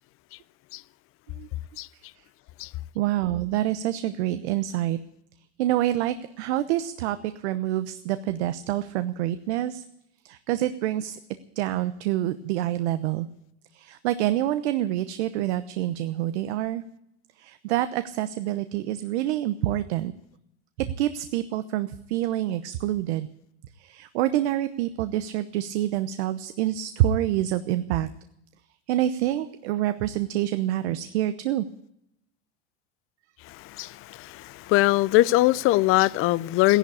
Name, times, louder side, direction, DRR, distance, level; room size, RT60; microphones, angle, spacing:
voice 1, 2.9-5.0 5.6-9.8 10.2-11.2 11.6-13.3 13.7-16.8 17.4-20.1 20.8-23.3 23.8-28.1 28.9-31.7, right 13 dB, 80° right, 0.9 m, -27 dB
voice 2, 33.4-36.8, left 18 dB, 40° left, 0.6 m, -22 dB
15.0 x 11.0 x 8.5 m
supercardioid pair, 130°, 33 cm